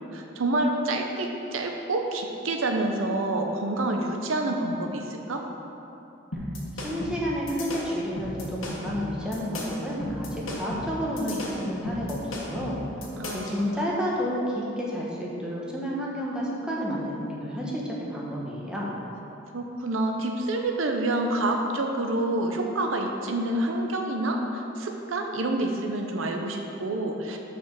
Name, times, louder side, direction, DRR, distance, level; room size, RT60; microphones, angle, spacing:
voice 1, 0.1-5.4 13.2-13.8 19.5-27.4, right 2 dB, 85° right, 3 dB, 0.7 m, -28 dB
sound 1, 6.3-13.6, left 1 dB, 85° left, 1.4 m, -35 dB
voice 2, 6.8-12.8 13.3-18.9, equal, 5° right, -5 dB, 1.1 m, -30 dB
5.9 x 5.1 x 6.8 m, 2.8 s
head